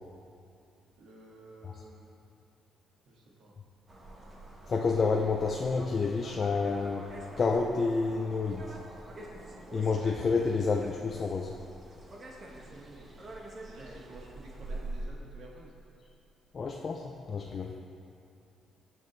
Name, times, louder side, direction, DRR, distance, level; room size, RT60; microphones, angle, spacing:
voice 1, 1.0-2.1 3.1-3.5 12.7-13.4 13.6-15.7, right 2 dB, 70° right, -3 dB, 2.0 m, -52 dB
sound 1, 3.9-15.1, right 1 dB, 35° right, 1.5 m, -45 dB
voice 2, 4.7-7.1 7.4-8.6 9.7-11.5 16.5-17.7, left 4 dB, 45° left, 0 dB, 0.6 m, -29 dB
16.5 x 6.2 x 3.3 m, 2.6 s
cardioid pair, 90°, 0 cm